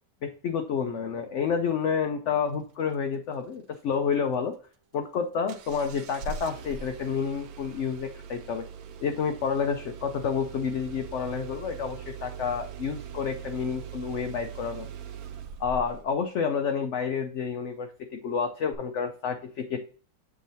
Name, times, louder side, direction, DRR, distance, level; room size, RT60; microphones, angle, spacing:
voice 1, 0.2-4.5 4.9-8.6 9.0-14.9 15.6-19.8, left 6 dB, 65° left, 4 dB, 0.7 m, -29 dB
Engine starting, 5.5-16.1 18.7-18.8, right 7 dB, 70° right, 1.0 m, -41 dB
7.5 x 3.6 x 4.0 m, 0.41 s
omnidirectional pair, 1.8 m